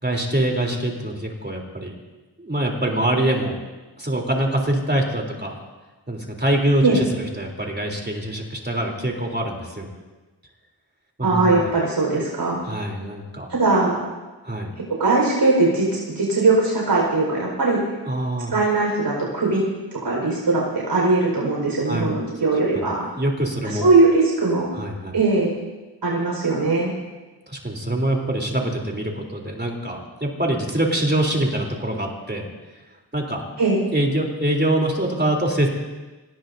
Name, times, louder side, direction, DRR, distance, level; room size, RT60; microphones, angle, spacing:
voice 1, 0.0-1.9 2.4-3.6 4.0-5.6 6.1-9.9 11.2-11.7 12.6-13.5 14.4-14.7 18.1-18.5 21.9-22.1 22.7-22.9 23.1-23.9 24.7-25.1 27.5-32.5 33.1-33.4 33.9-35.7, right 1 dB, 25° right, 0 dB, 3.6 m, -24 dB
voice 2, 11.2-12.6 13.5-14.0 15.0-17.8 18.5-19.6 19.9-23.1 23.6-24.7 25.1-25.5 26.0-26.9 33.6-33.8, right 3 dB, 85° right, -3 dB, 5.0 m, -20 dB
26.0 x 19.0 x 2.7 m, 1.2 s
wide cardioid pair, 60°, 40 cm